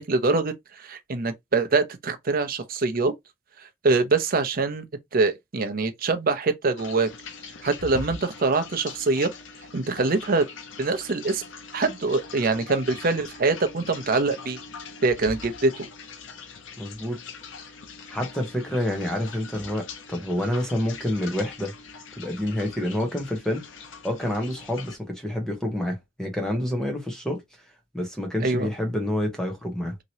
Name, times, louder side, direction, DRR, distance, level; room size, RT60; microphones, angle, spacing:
voice 1, 0.0-3.1 3.8-4.8 5.1-7.1 7.6-9.3 9.7-10.5 10.8-11.4 11.7-14.6 15.0-15.9 28.4-28.7, right 3 dB, 50° right, 0.6 m, -24 dB
sound 1, 6.8-25.0, left 5 dB, 90° left, 0.6 m, -42 dB
voice 2, 16.8-17.2 18.1-21.7 22.2-23.7 24.0-27.4 27.9-29.9, left 1 dB, 5° left, 0.9 m, -28 dB
2.9 x 2.9 x 2.8 m
head